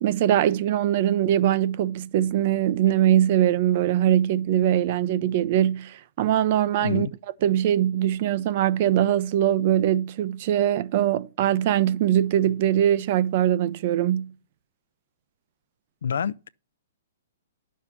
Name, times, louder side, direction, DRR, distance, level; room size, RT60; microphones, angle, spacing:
voice 1, 0.0-7.1 7.4-14.3, right 11 dB, 35° right, 0.5 m, -22 dB
voice 2, 6.8-7.1 16.0-16.5, left 7 dB, 80° left, 0.5 m, -27 dB
11.0 x 6.4 x 5.8 m
hypercardioid pair, 170°, 0 cm